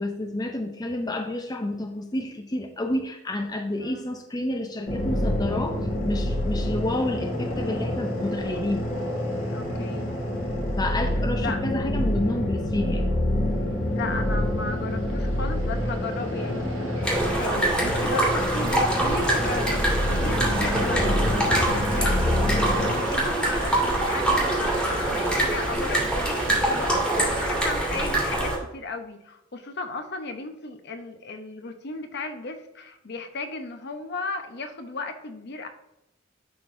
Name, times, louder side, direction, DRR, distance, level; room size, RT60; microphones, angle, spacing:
voice 1, 0.0-8.9 10.8-13.1, left 1 dB, 20° left, 3 dB, 0.5 m, -30 dB
sound 1, 4.9-22.9, left 1 dB, 80° left, 2.5 m, -27 dB
voice 2, 9.5-10.1 11.4-11.6 13.9-35.7, left 3 dB, 60° left, 6 dB, 0.8 m, -35 dB
sound 2, 13.9-27.5, right 4 dB, 85° right, 0.9 m, -40 dB
sound 3, 17.0-28.6, right 1 dB, 5° left, 2.1 m, -25 dB
11.0 x 3.9 x 2.6 m, 0.86 s
head